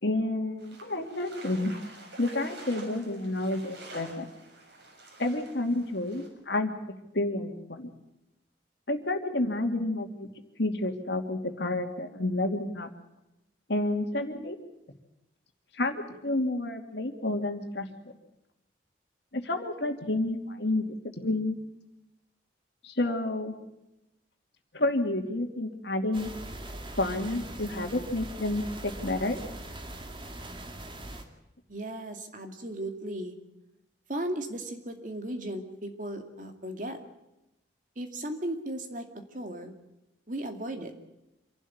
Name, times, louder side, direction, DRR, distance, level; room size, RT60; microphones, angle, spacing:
voice 1, 0.0-1.7 2.2-4.2 5.2-6.7 7.1-7.9 8.9-10.3 10.6-12.9 13.7-14.6 15.7-17.9 19.3-20.9 21.2-21.6 22.8-23.5 24.7-26.3 27.0-29.4, left 2 dB, 70° left, 5 dB, 2.6 m, -30 dB
sound 1, 0.6-6.3, right 2 dB, 75° right, 6.7 m, -48 dB
sound 2, 26.1-31.2, right 1 dB, 25° right, 2.3 m, -41 dB
voice 2, 31.7-33.4 34.1-37.0 38.0-39.1 39.3-39.7 40.3-40.9, right 1 dB, 45° right, 5 dB, 2.4 m, -36 dB
27.0 x 12.0 x 9.4 m, 0.92 s
head